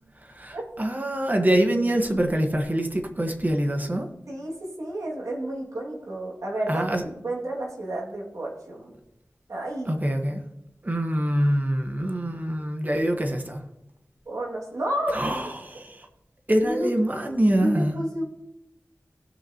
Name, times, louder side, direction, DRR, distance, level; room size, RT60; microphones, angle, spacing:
voice 1, 0.2-4.1 6.7-7.0 9.8-10.4 10.8-13.6 15.1-16.1 16.5-18.0, right 1 dB, 30° right, 4 dB, 1.4 m, -25 dB
voice 2, 4.3-6.9 7.1-8.9 9.5-9.9 14.3-15.3 16.6-16.9 17.6-18.2, right 1 dB, 85° right, -3 dB, 2.4 m, -31 dB
17.5 x 5.9 x 3.0 m, 0.87 s
wide cardioid pair, 55°, 5 cm